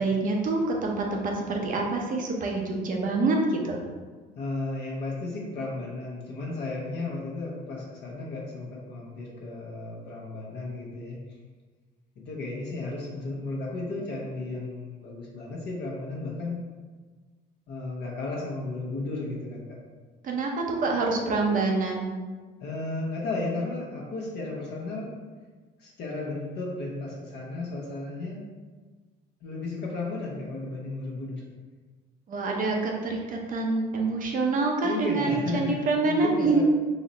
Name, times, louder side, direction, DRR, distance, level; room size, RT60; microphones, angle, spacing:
voice 1, 0.0-3.8 20.2-22.1 32.3-36.6, right 3 dB, 45° right, 1 dB, 0.7 m, -26 dB
voice 2, 4.4-11.2 12.2-16.6 17.7-19.8 22.6-25.1 25.8-28.4 29.4-31.4 34.8-36.6, left 2 dB, 65° left, -4 dB, 0.8 m, -34 dB
4.1 x 2.0 x 3.9 m, 1.4 s
cardioid pair, 120°, 19 cm